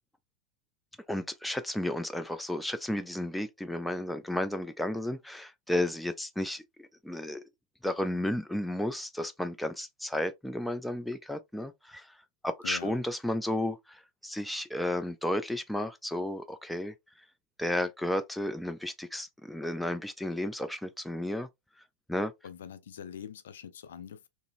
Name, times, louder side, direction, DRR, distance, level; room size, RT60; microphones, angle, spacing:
voice 1, 1.1-7.4 7.8-12.1 12.4-16.9 17.6-21.5 22.1-22.3, left 1 dB, 5° left, 0.4 m, -33 dB
voice 2, 12.6-13.0 22.4-24.3, left 8 dB, 60° left, 0.4 m, -43 dB
3.8 x 2.1 x 2.5 m
figure-of-eight pair, 90°, 0 cm